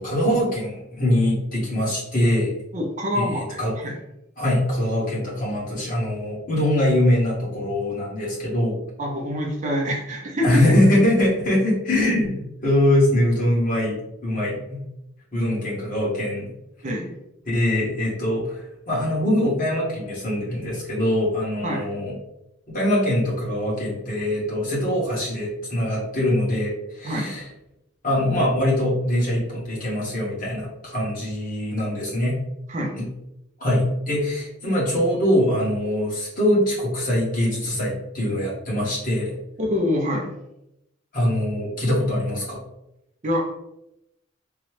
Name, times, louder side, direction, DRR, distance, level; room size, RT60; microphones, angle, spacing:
voice 1, 0.0-2.5 3.1-3.7 4.4-8.8 10.4-14.0 14.2-14.8 15.3-16.5 17.4-22.1 22.7-27.5 28.0-32.4 33.0-33.1 33.6-39.3 41.1-42.6, left 1 dB, 40° left, -6 dB, 1.4 m, -23 dB
voice 2, 2.7-4.0 9.0-10.6 16.8-17.1 21.6-21.9 27.0-27.3 32.7-33.0 39.6-40.3 43.2-43.5, left 1 dB, 35° right, 0 dB, 0.5 m, -26 dB
3.8 x 2.3 x 3.1 m, 0.85 s
head